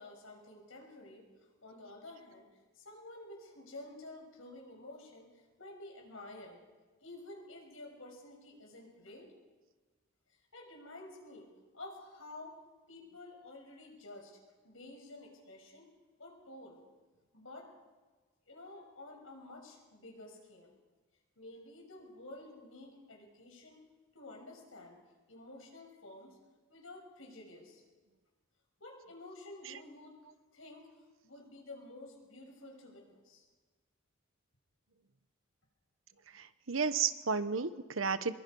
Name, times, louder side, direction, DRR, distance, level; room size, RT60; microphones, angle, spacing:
voice 1, 0.0-2.5 2.7-6.6 7.0-9.3 10.5-12.5 12.9-14.4 14.6-15.9 16.2-16.8 17.3-17.7 18.5-20.7 21.4-23.8 24.1-25.0 25.3-26.4 26.7-27.8 28.8-30.2 30.5-31.0 31.2-33.4, left 2 dB, 80° left, 1 dB, 6.4 m, -51 dB
voice 2, 36.3-38.4, right 5 dB, 75° right, 12 dB, 1.1 m, -32 dB
25.0 x 22.5 x 5.5 m, 1.3 s
head